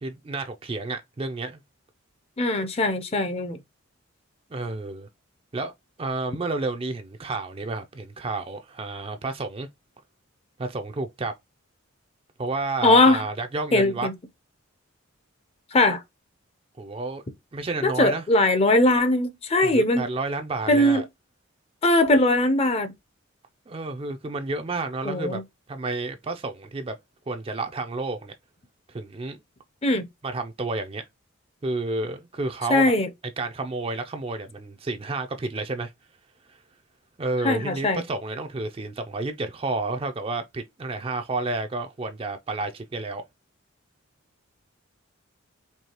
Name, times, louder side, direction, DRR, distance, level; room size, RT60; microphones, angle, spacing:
voice 1, 0.0-1.6 4.5-5.1 5.5-5.7 6.0-9.7 10.6-11.3 12.4-14.1 16.8-17.2 17.5-18.2 19.6-21.0 23.7-25.4 25.7-27.0 27.3-28.3 28.9-29.4 30.2-31.0 31.6-32.9 33.4-35.9 37.2-43.2, right 3 dB, 25° right, 0.4 m, -30 dB
voice 2, 2.4-3.6 12.8-13.2 13.7-14.1 15.7-16.0 17.8-20.1 20.7-21.0 21.8-22.9 25.0-25.4 29.8-30.1 32.7-33.1 37.4-38.0, left 2 dB, 30° left, 0.5 m, -20 dB
4.6 x 2.7 x 2.9 m
head